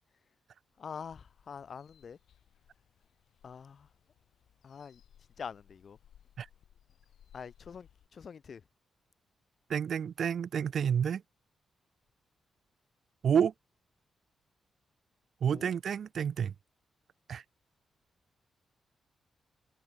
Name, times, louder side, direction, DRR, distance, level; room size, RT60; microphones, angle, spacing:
voice 1, 0.8-2.2 3.4-3.9 4.6-5.0 5.4-6.0 7.3-8.6 15.5-15.7, left 6 dB, 50° left, 0.6 m, -45 dB
sound 1, 1.1-8.1, left 10 dB, 85° left, 7.0 m, -64 dB
voice 2, 9.7-11.2 13.2-13.5 15.4-16.5 17.3-17.4, right 7 dB, 60° right, 1.0 m, -29 dB
wide cardioid pair, 135°, 0 cm